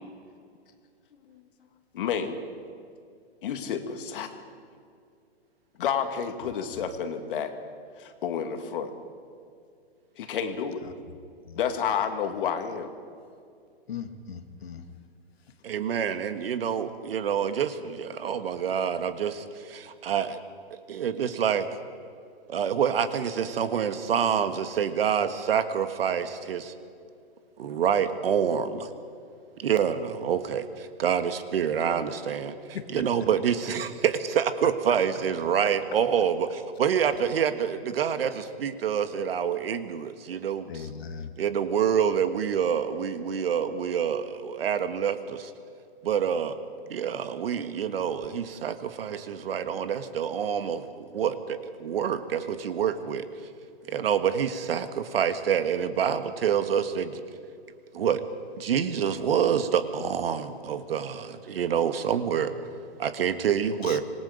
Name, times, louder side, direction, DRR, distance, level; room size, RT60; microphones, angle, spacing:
voice 1, 1.9-2.4 3.4-4.4 5.8-7.5 8.0-8.9 10.2-10.8 11.5-12.9, left 7 dB, 55° left, 7 dB, 2.3 m, -30 dB
voice 2, 13.9-14.9 32.7-32.9 40.7-41.3 63.8-64.0, left 7 dB, 70° left, 7 dB, 2.0 m, -38 dB
voice 3, 15.6-20.4 20.9-21.7 22.5-26.7 27.6-28.9 29.6-32.6 32.9-40.9 41.4-45.5 46.0-46.5 46.9-50.9 51.1-53.3 53.9-57.2 57.9-58.2 58.6-62.5 63.0-64.0, right 8 dB, 65° right, 10 dB, 1.6 m, -27 dB
26.0 x 19.5 x 5.1 m, 2.3 s
hypercardioid pair, 140°, 31 cm